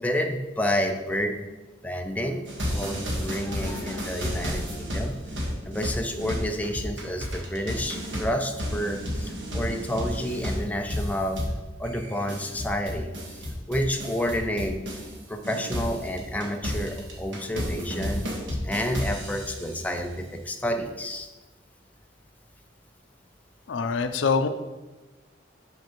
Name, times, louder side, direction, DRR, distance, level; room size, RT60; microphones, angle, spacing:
voice 1, 0.0-1.4 1.8-5.2 5.7-11.4 11.8-14.8 15.3-18.3 18.6-21.3, equal, 10° left, 4 dB, 0.4 m, -30 dB
sound 1, 2.5-15.2 15.4-19.8, equal, 70° right, 1.4 m, -32 dB
voice 2, 23.7-24.5, left 5 dB, 80° left, 9 dB, 0.4 m, -24 dB
6.3 x 5.9 x 3.0 m, 1.2 s
head